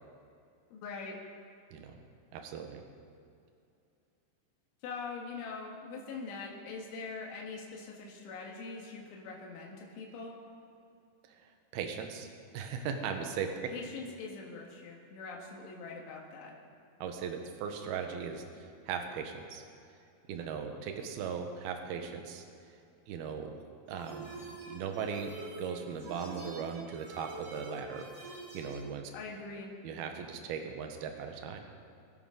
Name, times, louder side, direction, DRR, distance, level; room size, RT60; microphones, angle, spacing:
voice 1, 0.7-1.2 4.8-10.3 13.7-16.5 29.1-29.7, left 4 dB, 85° left, -2 dB, 4.2 m, -43 dB
voice 2, 2.3-2.8 11.3-11.4 11.7-12.3 12.5-13.5 17.0-18.4 18.9-19.6 20.3-22.4 23.1-23.5 23.9-28.0 28.5-29.1 29.8-31.7, right 6 dB, 70° right, 4 dB, 2.8 m, -38 dB
sound 1, 23.9-28.8, right 2 dB, 35° right, 4.4 m, -46 dB
25.5 x 13.0 x 3.9 m, 2.6 s
omnidirectional pair, 5.3 m